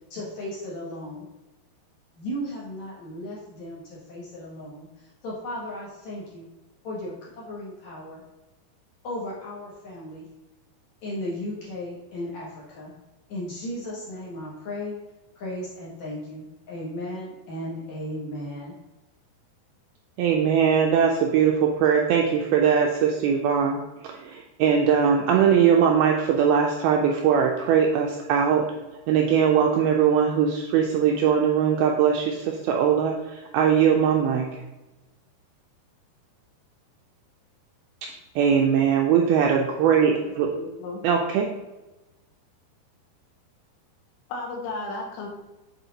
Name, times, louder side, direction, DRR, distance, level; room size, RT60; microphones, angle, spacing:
voice 1, 0.1-1.3 2.2-6.5 6.8-8.2 9.0-10.3 11.0-12.9 13.3-14.9 15.4-18.7, left 1 dB, 65° left, -5 dB, 1.9 m, -35 dB
voice 2, 20.2-28.7 29.1-34.6 38.4-40.5 41.0-41.5, right 7 dB, 85° right, 1 dB, 2.2 m, -21 dB
voice 3, 40.5-41.0 44.3-45.3, left 2 dB, 85° left, 1 dB, 3.5 m, -34 dB
7.9 x 4.4 x 3.9 m, 1.1 s
omnidirectional pair, 5.0 m